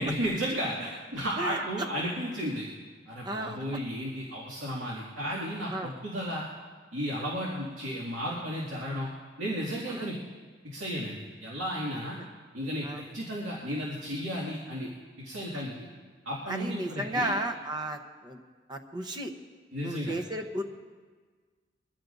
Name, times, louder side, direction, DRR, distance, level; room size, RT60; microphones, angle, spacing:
voice 1, 0.0-2.7 3.1-6.4 6.9-9.1 9.4-10.2 10.6-12.2 12.5-14.9 15.2-15.9 16.2-17.3 19.7-20.2, equal, 85° right, -5 dB, 2.2 m, -33 dB
voice 2, 3.2-3.6 5.7-5.9 9.9-10.1 12.8-13.0 16.5-18.0 18.2-18.4 18.7-19.3 19.8-20.6, right 1 dB, 25° right, 4 dB, 0.9 m, -33 dB
23.0 x 15.5 x 2.6 m, 1.5 s
head